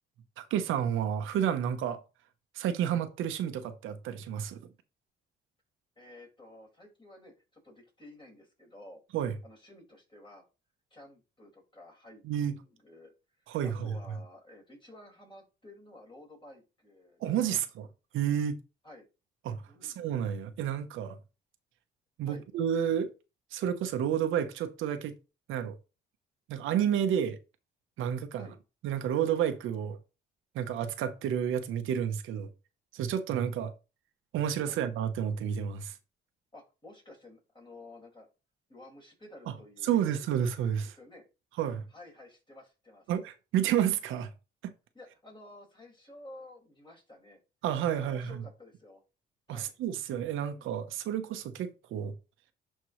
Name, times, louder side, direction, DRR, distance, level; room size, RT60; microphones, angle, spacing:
voice 1, 0.4-2.0 2.5-4.6 9.1-9.3 12.2-12.6 13.5-13.9 17.2-17.9 18.1-18.6 19.4-21.2 22.2-23.1 23.5-25.2 25.5-25.8 26.5-27.4 28.0-28.5 28.8-30.0 30.5-32.5 32.9-33.7 34.3-36.0 39.5-39.6 39.8-41.0 41.6-41.8 43.1-44.3 44.6-44.7 47.6-48.4 49.5-52.2, right 9 dB, 85° right, 0.9 m, -30 dB
voice 2, 6.0-9.0 9.4-10.5 10.9-13.1 13.4-17.6 18.8-19.1 19.7-20.0 22.2-22.4 28.4-28.6 34.7-34.8 36.5-38.3 38.7-40.1 40.9-41.3 41.9-43.1 44.9-47.4 47.9-49.0 49.5-49.8 50.4-50.7, left 1 dB, 25° left, 4.9 m, -52 dB
11.0 x 4.4 x 3.1 m
cardioid pair, 90°, 20 cm